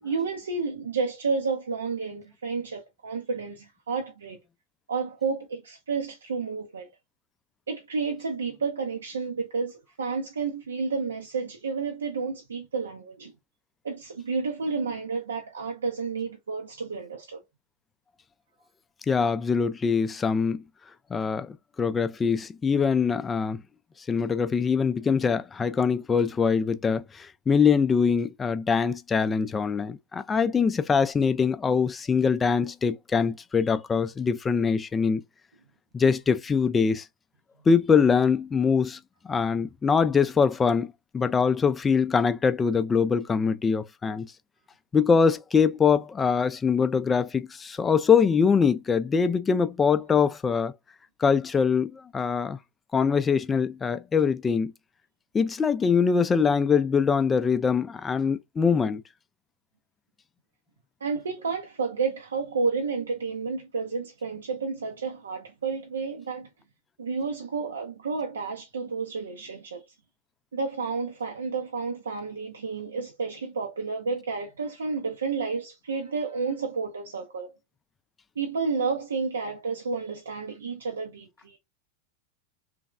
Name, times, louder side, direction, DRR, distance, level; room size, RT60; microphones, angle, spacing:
voice 1, 0.0-4.4 4.9-6.9 7.7-13.3 13.8-17.4 61.0-66.5 67.0-69.8 70.5-77.6 78.4-81.6, right 4 dB, 80° right, 0.5 m, -31 dB
voice 2, 19.1-20.6 21.1-23.6 24.1-35.2 35.9-37.1 37.7-39.0 39.2-44.3 44.9-50.7 51.2-52.6 52.9-54.7 55.3-59.0, left 6 dB, 20° left, 0.3 m, -23 dB
3.2 x 2.1 x 2.4 m
hypercardioid pair, 95°, 0 cm